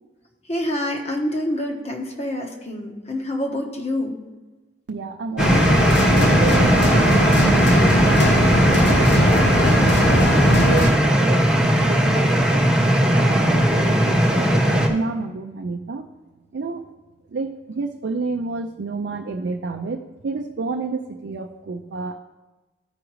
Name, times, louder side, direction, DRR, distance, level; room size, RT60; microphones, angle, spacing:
voice 1, 0.5-4.2, left 1 dB, 35° left, 2 dB, 1.0 m, -26 dB
voice 2, 4.9-11.4 11.8-12.6 13.1-16.0 16.5-16.8 17.3-22.2, right 3 dB, 75° right, 3 dB, 0.4 m, -30 dB
sound 1, 5.4-10.9, equal, 70° left, 1.0 m, -18 dB
sound 2, 5.4-14.9, equal, 5° right, 0.9 m, -18 dB
13.5 x 4.9 x 3.1 m, 1.2 s
head